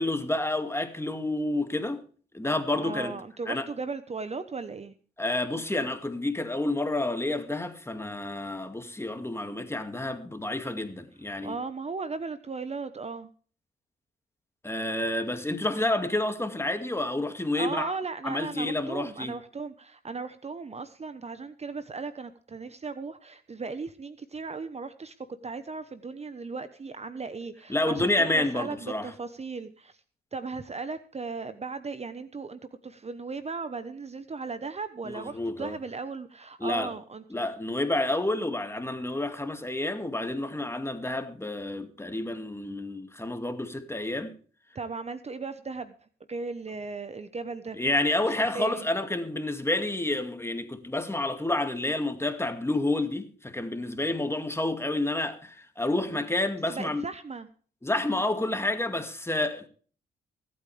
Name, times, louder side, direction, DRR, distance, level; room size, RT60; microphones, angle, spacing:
voice 1, 0.0-2.0 2.3-3.1 3.5-3.7 5.2-11.5 14.6-17.9 18.2-19.4 27.7-29.1 35.1-35.8 36.6-36.9 37.3-44.3 47.8-57.0 57.8-59.7, left 2 dB, 15° left, 2.3 m, -29 dB
voice 2, 2.8-4.9 11.4-13.3 17.6-30.0 30.3-37.5 44.7-46.0 46.3-47.8 48.2-48.9 56.1-56.3 56.7-57.5, right 4 dB, 35° right, 1.1 m, -37 dB
23.5 x 8.7 x 3.4 m
supercardioid pair, 65°, 20 cm